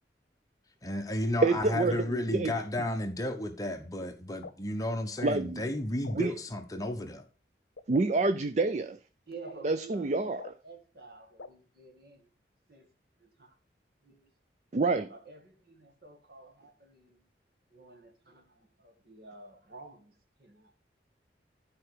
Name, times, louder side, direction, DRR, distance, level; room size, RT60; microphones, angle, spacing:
voice 1, 0.8-7.2, left 1 dB, 20° left, 1.1 m, -33 dB
voice 2, 1.4-2.5 5.2-5.6 6.1-6.3 7.9-9.0 9.6-10.5 14.7-15.1, right 3 dB, 40° right, 0.4 m, -27 dB
sound 1, 4.4-4.5 5.2-5.3 6.0-6.2 6.8-7.0 7.7-7.8 8.6-8.7 9.4-9.5 10.4-10.5 11.4-11.5, left 4 dB, 80° left, 0.8 m, -44 dB
voice 3, 9.3-10.3 10.6-12.3 12.7-13.5 14.0-14.3 14.8-17.3 17.7-20.8, right 3 dB, 60° right, 2.0 m, -51 dB
12.0 x 4.8 x 4.8 m
head